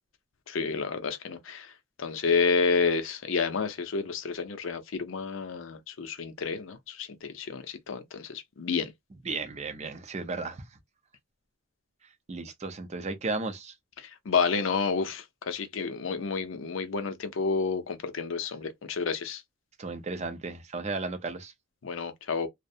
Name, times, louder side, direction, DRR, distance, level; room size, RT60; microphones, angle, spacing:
voice 1, 0.5-1.7 2.0-8.9 14.0-19.4 21.8-22.5, left 5 dB, 65° left, 0.5 m, -30 dB
voice 2, 9.3-10.6 12.3-13.7 19.8-21.5, right 3 dB, 30° right, 0.5 m, -34 dB
2.4 x 2.1 x 2.6 m
head